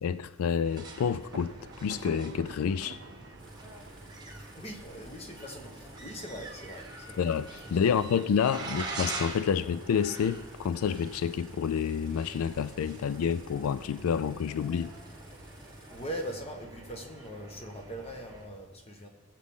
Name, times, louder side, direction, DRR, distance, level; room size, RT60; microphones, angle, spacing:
voice 1, 0.0-3.0 7.2-14.9, left 7 dB, 80° left, 14 dB, 0.3 m, -29 dB
sound 1, 0.6-18.5, right 2 dB, 20° right, 1.2 m, -44 dB
Thunder, 1.3-7.0, right 4 dB, 50° right, 0.5 m, -50 dB
sound 2, 3.4-16.3, right 2 dB, 5° left, 2.1 m, -56 dB
voice 2, 4.3-7.3 7.6-7.9 8.7-8.8 15.9-19.1, equal, 30° left, 3 dB, 1.2 m, -41 dB
19.5 x 7.5 x 3.7 m, 1.3 s
head